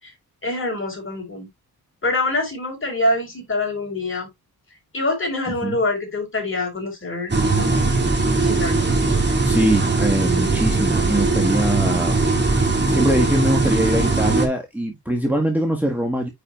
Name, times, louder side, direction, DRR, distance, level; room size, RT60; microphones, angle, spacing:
voice 1, 0.4-1.5 2.0-4.3 4.9-7.8 8.4-8.8, left 2 dB, 30° left, 4.8 m, -25 dB
sound 1, 7.3-14.5, right 3 dB, 25° right, 2.2 m, -20 dB
voice 2, 9.4-12.2 12.5-16.3, equal, 5° right, 1.6 m, -23 dB
9.6 x 4.9 x 2.5 m
wide cardioid pair, 125°, 39 cm